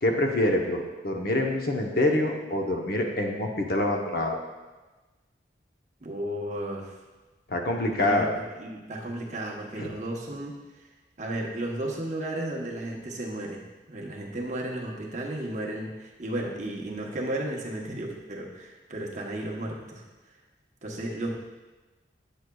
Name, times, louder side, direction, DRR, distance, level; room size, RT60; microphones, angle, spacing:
voice 1, 0.0-4.4 7.5-8.3 9.8-9.9, left 1 dB, 55° left, 2 dB, 0.7 m, -26 dB
voice 2, 6.0-6.9 8.0-10.6 11.2-20.0 20.8-21.3, right 1 dB, 40° right, -1 dB, 0.9 m, -34 dB
8.2 x 6.3 x 2.3 m, 1.2 s
head